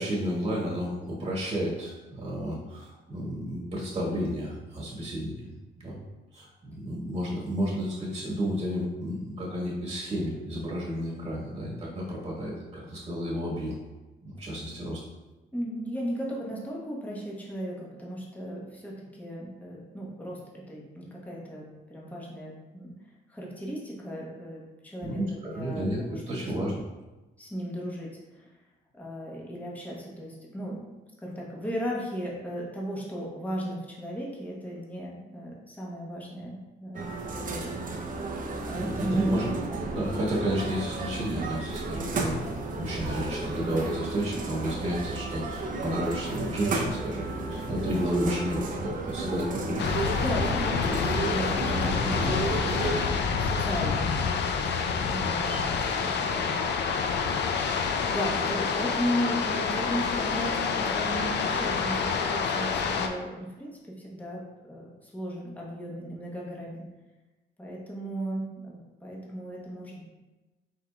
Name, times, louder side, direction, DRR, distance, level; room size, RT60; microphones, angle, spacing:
voice 1, 0.0-5.3 5.8-6.0 6.3-13.8 14.2-15.0 25.0-26.0 26.3-26.7 38.8-39.5 39.9-49.8, equal, 25° right, -5 dB, 1.5 m, -31 dB
voice 2, 15.5-23.0 23.3-26.7 27.4-28.5 28.9-30.9 31.2-37.8 38.7-39.5 50.1-54.2 54.7-56.6 57.6-66.9 67.6-70.0, equal, 10° left, -4 dB, 1.1 m, -36 dB
sound 1, 36.9-53.0, right 2 dB, 40° right, 0.7 m, -33 dB
sound 2, 49.8-63.1, left 5 dB, 60° left, 0.5 m, -28 dB
5.3 x 3.8 x 2.3 m, 1.1 s
cardioid pair, 90°, 20 cm